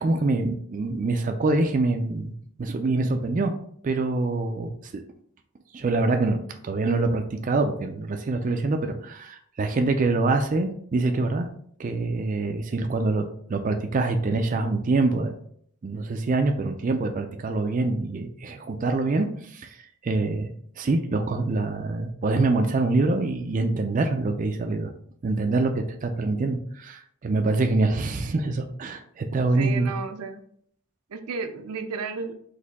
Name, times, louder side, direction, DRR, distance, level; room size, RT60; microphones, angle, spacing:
voice 1, 0.0-2.3 2.6-3.6 3.8-5.0 5.7-11.5 11.8-15.4 15.8-20.5 20.8-24.9 25.2-29.9, right 3 dB, 35° right, 5 dB, 0.3 m, -25 dB
voice 2, 29.3-30.4 31.1-32.3, right 5 dB, 90° right, 7 dB, 0.5 m, -33 dB
4.2 x 2.7 x 4.0 m, 0.64 s
head